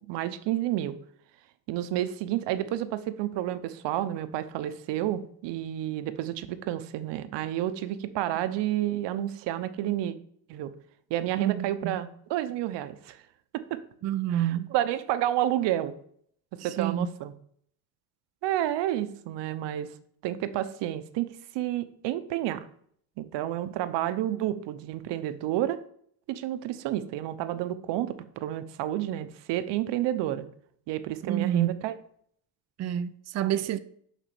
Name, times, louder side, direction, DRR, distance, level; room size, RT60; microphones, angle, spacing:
voice 1, 0.1-1.0 1.7-10.1 10.5-10.7 11.1-13.2 13.5-13.8 14.3-15.9 16.6-17.3 18.4-19.9 20.2-22.6 23.2-25.8 26.3-30.5 30.9-31.9, right 13 dB, 90° right, 0.9 m, -30 dB
voice 2, 11.4-11.9 14.0-14.7 16.6-17.1 23.7-23.8 31.2-31.8 32.8-33.8, right 11 dB, 40° right, 0.5 m, -28 dB
7.2 x 6.1 x 7.0 m
cardioid pair, 150°, 41 cm